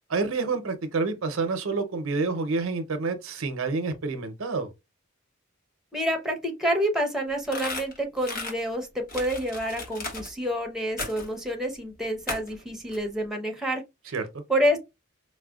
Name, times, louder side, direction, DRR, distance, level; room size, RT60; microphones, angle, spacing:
voice 1, 0.1-4.7 14.1-14.4, right 4 dB, 70° right, 0.6 m, -28 dB
voice 2, 5.9-14.1 14.5-14.8, equal, ahead, 0.7 m, -28 dB
sound 1, 7.4-8.5 9.1-10.3 11.0-11.3 12.3-12.6 12.9-13.0, left 2 dB, 45° left, 1.0 m, -35 dB
4.7 x 2.1 x 2.3 m
head